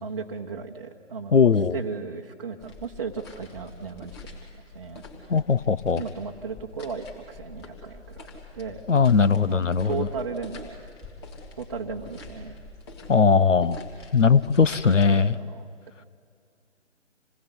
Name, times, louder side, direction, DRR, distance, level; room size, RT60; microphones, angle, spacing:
voice 1, 0.0-4.4 4.7-5.0 5.9-8.3 8.5-8.8 9.5-10.7 11.6-12.6 14.8-15.7, right 5 dB, 25° right, -2 dB, 1.1 m, -35 dB
voice 2, 1.3-1.7 5.3-6.0 8.9-10.1 13.1-13.8 14.1-15.3, left 5 dB, 70° left, 16 dB, 1.0 m, -19 dB
sound 1, 2.6-15.1, left 3 dB, 20° left, 3.2 m, -45 dB
27.5 x 19.5 x 9.8 m, 2.3 s
figure-of-eight pair, 155°, 38 cm